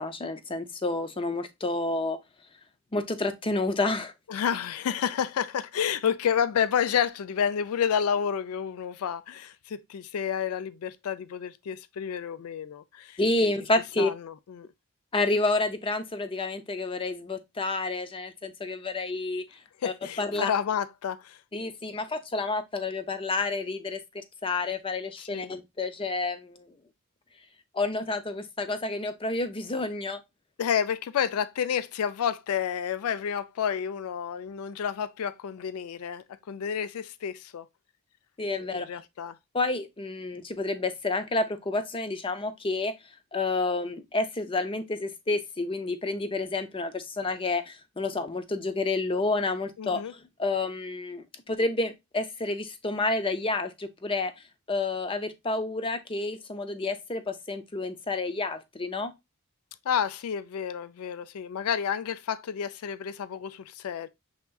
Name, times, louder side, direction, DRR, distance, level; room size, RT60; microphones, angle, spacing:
voice 1, 0.0-2.2 2.9-4.1 13.2-14.1 15.1-19.4 19.8-20.5 21.5-26.7 27.7-30.2 38.4-38.9 39.5-42.9 43.3-54.3 54.7-59.1, left 2 dB, 25° left, 0.5 m, -29 dB
voice 2, 4.3-13.2 14.0-14.7 19.8-21.4 25.3-25.5 30.6-37.7 38.6-39.4 49.8-50.1 59.9-64.1, left 8 dB, 80° left, 0.4 m, -30 dB
5.6 x 3.5 x 2.3 m
head